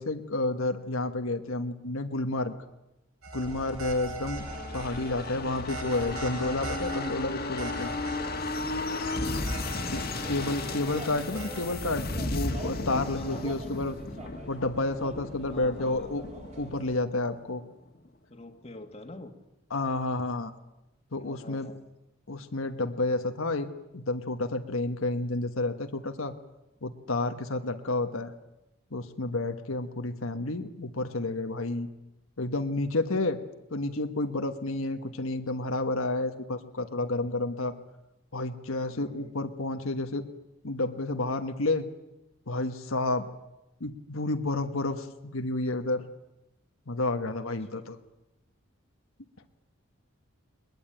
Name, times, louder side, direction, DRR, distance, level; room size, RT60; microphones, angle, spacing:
voice 1, 0.0-2.5 3.3-4.4 4.7-7.9 9.7-13.9 14.5-16.2 16.6-17.6 19.7-20.5 21.1-21.7 22.3-26.3 26.8-28.3 28.9-31.9 32.4-33.4 33.7-37.7 38.3-40.3 40.6-41.9 42.5-43.3 43.8-46.0 46.9-48.0, left 2 dB, 75° left, 6 dB, 1.4 m, -30 dB
sound 1, 3.2-11.8, right 3 dB, 75° right, 2.6 m, -42 dB
sound 2, 3.4-17.0, right 1 dB, 30° right, 4.3 m, -45 dB
sound 3, 4.2-17.6 18.0-18.1, left 2 dB, 45° left, 1.8 m, -35 dB
voice 2, 13.1-13.8 15.5-16.1 18.3-19.3 21.2-21.8 27.6-27.9 38.9-39.5, left 2 dB, 30° left, 5 dB, 1.8 m, -47 dB
21.5 x 21.0 x 8.9 m, 0.94 s
head